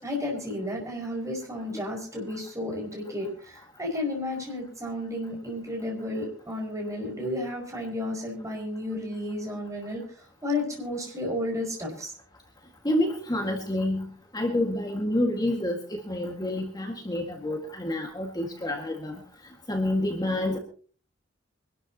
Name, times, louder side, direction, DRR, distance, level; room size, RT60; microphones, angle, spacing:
voice 1, 0.0-10.0 10.4-12.1, left 1 dB, 15° right, -1 dB, 5.6 m, -32 dB
voice 2, 12.8-14.1 14.3-19.2 19.7-20.6, left 1 dB, 20° left, 2 dB, 1.9 m, -28 dB
24.5 x 12.5 x 2.9 m, 0.41 s
head